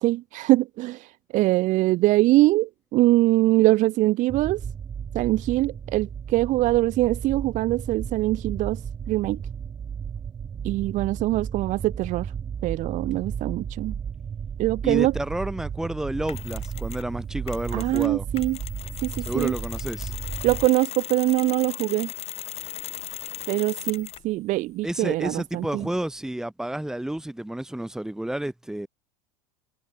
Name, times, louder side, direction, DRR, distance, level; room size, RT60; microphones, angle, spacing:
voice 1, 0.0-4.6 5.1-8.8 9.1-9.4 10.6-12.3 12.6-13.9 14.6-15.1 17.7-18.6 19.0-19.5 20.4-22.1 23.5-25.9, right 18 dB, 50° right, 1.0 m, -23 dB
sound 1, 4.3-20.7, right 7 dB, 20° right, 0.5 m, -34 dB
voice 2, 14.8-18.3 19.3-20.1 24.8-28.9, right 1 dB, 5° right, 1.3 m, -30 dB
Mechanisms, 16.3-17.1 17.5-24.3, left 10 dB, 40° left, 3.7 m, -37 dB
hypercardioid pair, 105°, 17 cm